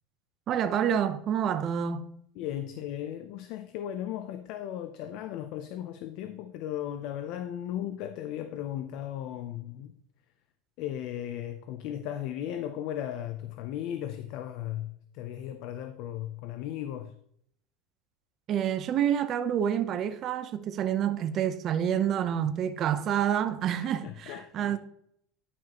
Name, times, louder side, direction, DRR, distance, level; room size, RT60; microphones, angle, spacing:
voice 1, 0.5-2.0 18.5-24.8, right 9 dB, 35° right, 0.6 m, -28 dB
voice 2, 2.4-9.9 10.8-17.1 23.8-24.8, left 11 dB, 50° left, 0.5 m, -36 dB
10.5 x 6.1 x 3.0 m
supercardioid pair, 155°, 0 cm